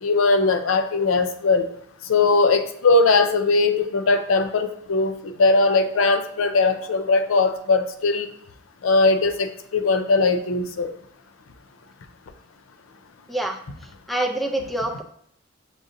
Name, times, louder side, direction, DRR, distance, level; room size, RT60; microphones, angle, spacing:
voice 1, 0.0-1.7 2.1-8.3 8.8-10.9, left 3 dB, 70° left, 8 dB, 0.5 m, -20 dB
voice 2, 14.1-15.0, right 1 dB, ahead, 3 dB, 0.4 m, -25 dB
6.2 x 2.5 x 2.6 m, 0.68 s
head